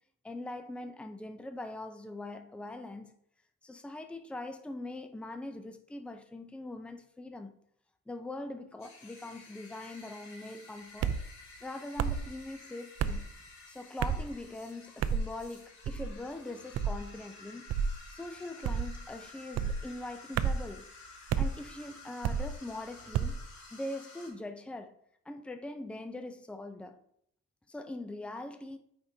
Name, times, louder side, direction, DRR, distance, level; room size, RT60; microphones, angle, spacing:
voice 1, 0.2-3.1 3.6-7.6 8.1-11.1 11.6-13.3 13.7-17.7 18.1-20.9 21.4-23.4 23.7-25.0 25.3-27.0 27.7-28.8, left 2 dB, 5° left, 0.6 m, -42 dB
sound 1, 8.8-24.3, left 3 dB, 65° left, 2.8 m, -52 dB
sound 2, 11.0-11.2 12.0-12.3 13.0-13.2 14.0-14.3 15.0-15.3 15.8-16.1 16.7-17.0 17.7-18.0 18.6-19.0 19.5-19.8 20.4-20.7 21.3-21.5 22.2-22.5 23.1-23.4, right 7 dB, 55° right, 0.5 m, -30 dB
9.1 x 5.2 x 2.8 m
cardioid pair, 90°, 30 cm